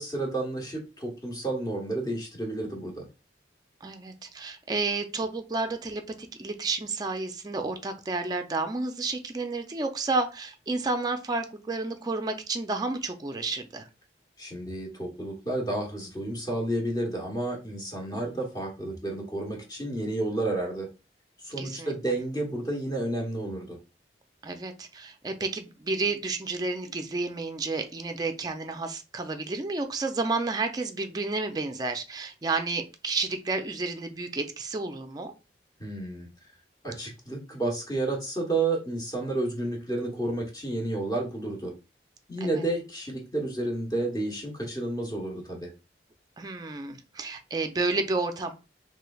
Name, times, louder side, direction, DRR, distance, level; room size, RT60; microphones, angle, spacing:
voice 1, 0.0-3.0 14.4-20.9 21.4-23.8 35.8-36.3 36.8-41.7 42.3-45.7, right 2 dB, 20° left, 0 dB, 1.0 m, -31 dB
voice 2, 3.8-13.9 18.1-18.2 21.6-21.9 24.4-35.3 42.4-42.6 46.4-48.5, right 3 dB, 20° right, 5 dB, 0.4 m, -31 dB
3.2 x 3.1 x 2.3 m, 0.30 s
head